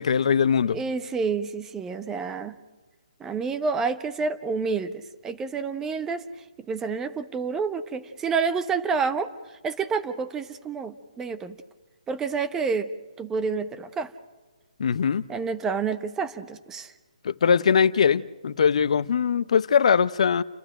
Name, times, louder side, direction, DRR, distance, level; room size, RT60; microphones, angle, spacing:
voice 1, 0.0-0.8 14.8-15.3 17.2-20.4, left 7 dB, 65° left, 0.8 m, -21 dB
voice 2, 0.6-2.5 3.2-11.6 12.1-12.9 13.2-14.1 15.3-16.9, right 5 dB, 10° right, 1.0 m, -29 dB
29.5 x 12.0 x 9.1 m
hypercardioid pair, 150°, 4 cm